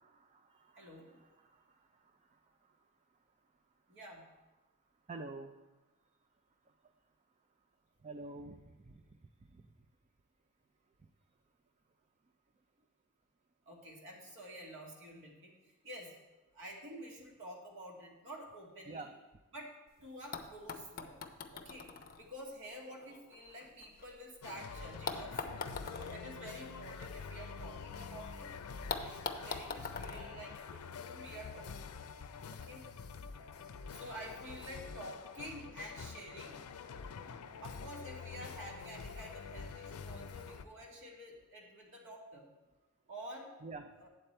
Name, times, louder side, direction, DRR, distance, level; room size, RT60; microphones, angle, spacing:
voice 1, 0.0-2.1 5.1-5.5 8.0-9.0 9.5-9.6 18.9-19.1 43.6-44.1, right 3 dB, 30° right, 6 dB, 0.4 m, -49 dB
voice 2, 0.8-1.2 3.9-4.2 13.7-16.1 16.5-19.1 19.5-19.7 20.0-21.1 21.5-21.9 22.2-25.4 25.9-28.6 29.0-31.8 32.5-32.9 33.9-36.6 37.6-42.5 43.1-43.5 44.0-44.1, equal, 60° right, -2 dB, 1.9 m, -49 dB
sound 1, 19.9-20.0 20.3-24.4 25.1-28.0 28.3-28.4 28.9-31.3 32.3-32.4, left 4 dB, 45° left, 0.6 m, -44 dB
sound 2, 24.4-40.7, left 5 dB, 85° left, 0.5 m, -47 dB
8.7 x 7.7 x 4.4 m, 1.1 s
head